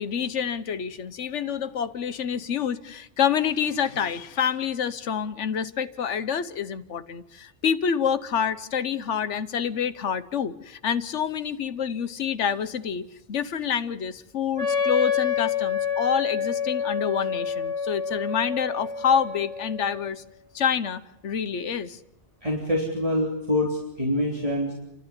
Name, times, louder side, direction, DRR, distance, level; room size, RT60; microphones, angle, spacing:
voice 1, 0.0-20.2 20.5-22.0, left 7 dB, 80° left, 13 dB, 1.3 m, -27 dB
Wind instrument woodwind instrument, 14.6-20.2, left 7 dB, 75° right, 4.3 m, -28 dB
voice 2, 22.4-24.7, left 1 dB, 30° right, -2 dB, 3.7 m, -25 dB
29.0 x 12.5 x 9.8 m, 0.93 s
omnidirectional pair, 1.2 m